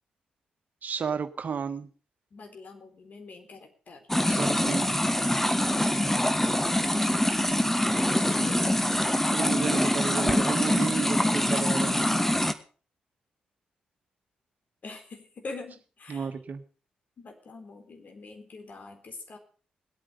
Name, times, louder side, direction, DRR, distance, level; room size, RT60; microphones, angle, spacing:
voice 1, 0.8-1.9 4.3-4.9 8.4-8.5 9.3-12.0 16.1-16.6, right 6 dB, 55° right, 9 dB, 1.5 m, -32 dB
voice 2, 2.3-4.0 6.0-7.8 8.1-8.8 11.1-12.5 14.8-16.3 17.2-19.4, left 3 dB, 55° left, 5 dB, 4.0 m, -45 dB
sound 1, 4.1-12.5, left 1 dB, 10° left, 1.5 m, -24 dB
20.0 x 8.8 x 5.4 m, 0.39 s
hypercardioid pair, 45°, 3 cm